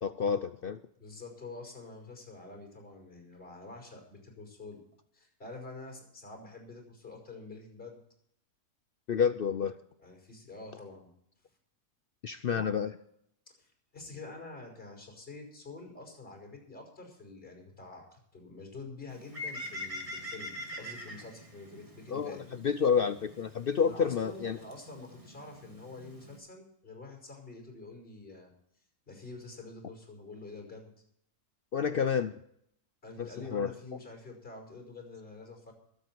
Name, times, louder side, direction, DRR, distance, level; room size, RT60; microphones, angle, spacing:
voice 1, 0.0-0.8 9.1-9.8 12.2-12.9 22.1-22.4 22.6-24.6 31.7-32.4 33.2-33.7, left 6 dB, 65° left, 11 dB, 0.5 m, -29 dB
voice 2, 1.0-4.8 5.1-8.0 10.0-11.1 12.5-12.7 13.6-13.7 13.9-22.4 23.8-28.5 29.1-30.9 33.0-35.7, left 3 dB, 35° left, 2 dB, 5.7 m, -47 dB
Bird, 19.1-26.4, left 1 dB, 20° right, 2.3 m, -44 dB
23.0 x 8.5 x 4.6 m, 0.71 s
omnidirectional pair, 1.7 m